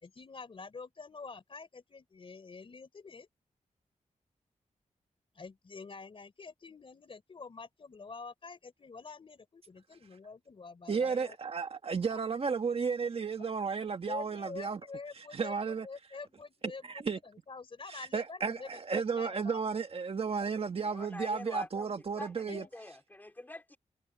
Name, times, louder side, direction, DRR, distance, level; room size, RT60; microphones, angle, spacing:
voice 1, 0.0-3.3 5.3-11.4 12.1-12.2 14.1-19.6 20.4-20.5 22.5-22.7, left 4 dB, 40° left, 3.6 m, -47 dB
voice 2, 10.9-14.8 15.3-15.9 16.6-17.2 17.9-22.6, right 5 dB, 45° right, 1.7 m, -33 dB
voice 3, 20.8-22.3 22.7-23.8, left 1 dB, 15° left, 2.9 m, -45 dB
wide cardioid pair, 135°, 14 cm